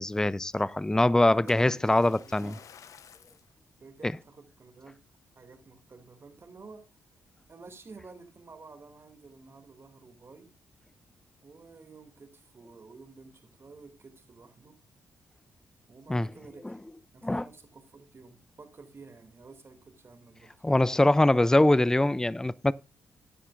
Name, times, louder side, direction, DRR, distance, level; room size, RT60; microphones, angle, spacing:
voice 1, 0.0-2.5 4.0-4.1 16.1-16.3 17.2-17.5 20.6-22.7, left 1 dB, 10° left, 0.4 m, -23 dB
voice 2, 1.1-2.6 3.8-5.0 5.4-6.8 7.5-10.5 11.4-14.8 15.9-16.8 17.1-20.5, right 4 dB, 40° right, 2.5 m, -51 dB
Splash splatter, 1.5-3.5 4.2-4.4 5.0-5.1, left 8 dB, 60° left, 0.7 m, -51 dB
14.5 x 10.0 x 2.5 m
hypercardioid pair, 45°, 6 cm